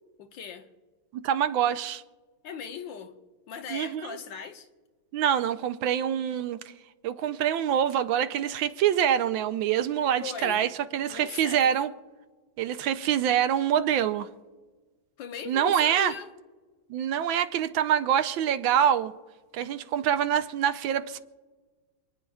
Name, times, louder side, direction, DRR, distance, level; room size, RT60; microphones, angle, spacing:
voice 1, 0.2-0.7 2.4-3.1 3.5-4.7 10.2-10.7 11.1-11.8 15.2-16.3, left 7 dB, 70° left, 1.5 m, -38 dB
voice 2, 1.1-2.0 3.7-4.2 5.1-6.7 7.0-11.9 12.6-14.3 15.5-16.1 16.9-19.1 19.5-21.2, right 9 dB, 80° right, 1.4 m, -25 dB
28.0 x 9.8 x 2.4 m
omnidirectional pair, 2.2 m